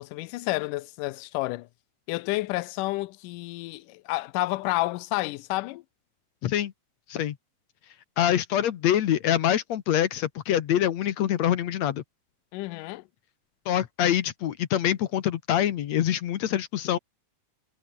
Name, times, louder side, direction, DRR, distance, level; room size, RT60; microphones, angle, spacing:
voice 1, 0.0-1.7 2.1-5.8 12.5-13.0, left 20 dB, 85° left, 2.1 m, -30 dB
voice 2, 8.2-12.0 13.7-17.0, left 11 dB, 65° left, 2.1 m, -25 dB
omnidirectional pair, 3.9 m